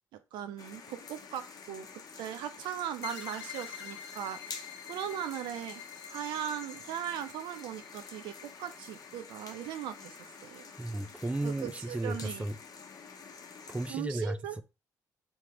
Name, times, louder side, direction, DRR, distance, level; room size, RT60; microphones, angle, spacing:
voice 1, 0.3-1.9 2.2-4.4 4.9-10.6 11.4-12.5 13.9-14.6, right 10 dB, 85° right, 0.4 m, -39 dB
sound 1, 0.6-13.9, left 5 dB, 55° left, 1.0 m, -49 dB
sound 2, 3.0-10.3, left 9 dB, 90° left, 1.2 m, -48 dB
voice 2, 10.8-12.6 13.7-14.6, right 1 dB, 15° right, 0.5 m, -34 dB
3.6 x 2.9 x 4.6 m
supercardioid pair, 65°, 8 cm